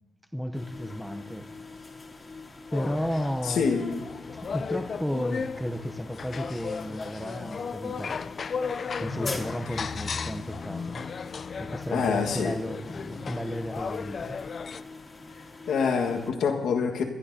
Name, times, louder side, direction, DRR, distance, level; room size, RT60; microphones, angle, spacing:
voice 1, 0.3-1.5 2.7-3.8 4.5-8.1 9.0-11.1 11.6-14.4, equal, ahead, 0.7 m, -33 dB
sound 1, 0.5-16.3, left 3 dB, 30° left, 2.3 m, -44 dB
sound 2, 2.7-14.8, left 5 dB, 55° left, 0.4 m, -35 dB
voice 2, 3.4-4.0 9.7-9.8 11.9-12.6 15.7-17.0, left 5 dB, 85° left, 1.5 m, -26 dB
22.5 x 11.0 x 2.8 m
cardioid pair, 80°, 0 cm